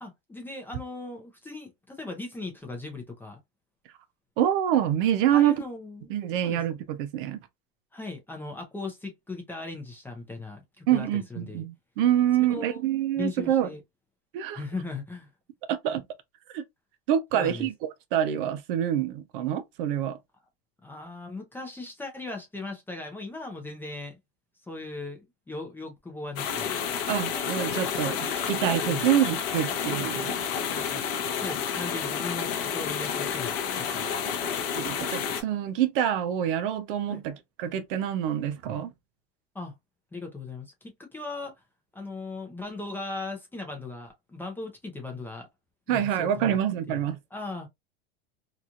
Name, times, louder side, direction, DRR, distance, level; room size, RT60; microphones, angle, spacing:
voice 1, 0.0-3.4 5.3-6.1 6.4-6.6 7.9-11.7 12.5-12.8 13.2-13.8 14.5-15.3 17.3-17.7 20.8-24.2 24.6-26.8 28.9-29.1 30.7-31.0 31.4-32.5 32.7-34.1 37.1-37.2 39.5-39.8 40.1-41.5 41.9-45.5 45.9-46.6 46.9-47.7, left 3 dB, 5° left, 0.6 m, -38 dB
voice 2, 4.4-5.5 6.1-7.4 10.9-13.7 14.3-14.6 15.7-16.0 16.5-16.6 17.1-20.2 27.1-30.4 34.7-38.9 45.9-47.2, right 10 dB, 55° right, 0.5 m, -26 dB
sound 1, 26.4-35.4, left 7 dB, 45° left, 0.7 m, -30 dB
2.9 x 2.4 x 2.4 m
supercardioid pair, 145°, 31 cm